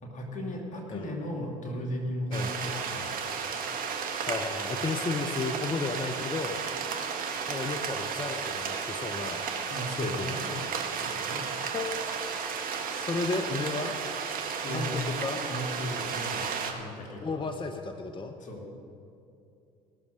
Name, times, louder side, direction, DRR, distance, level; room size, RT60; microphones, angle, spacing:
voice 1, 0.0-3.2 9.7-10.5 10.9-11.5 14.6-17.4 18.4-18.7, equal, 45° left, 0 dB, 2.6 m, -36 dB
sound 1, 2.3-16.7, right 6 dB, 50° right, 1.5 m, -33 dB
voice 2, 4.3-6.6 7.5-9.5 10.0-10.6 11.6-12.1 12.9-13.9 14.7-15.4 17.2-18.4, left 3 dB, 25° left, 7 dB, 0.9 m, -33 dB
18.5 x 6.7 x 6.4 m, 2.6 s
hypercardioid pair, 60°, 18 cm